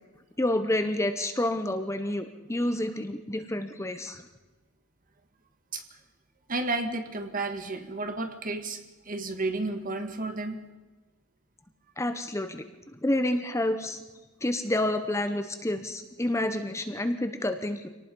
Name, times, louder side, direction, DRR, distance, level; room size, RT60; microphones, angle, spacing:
voice 1, 0.4-4.2 12.0-12.6 12.9-14.0 14.4-17.9, left 1 dB, 15° left, 8 dB, 0.9 m, -29 dB
voice 2, 6.5-10.6, right 2 dB, 40° right, 7 dB, 1.9 m, -32 dB
26.0 x 18.5 x 5.4 m, 1.2 s
head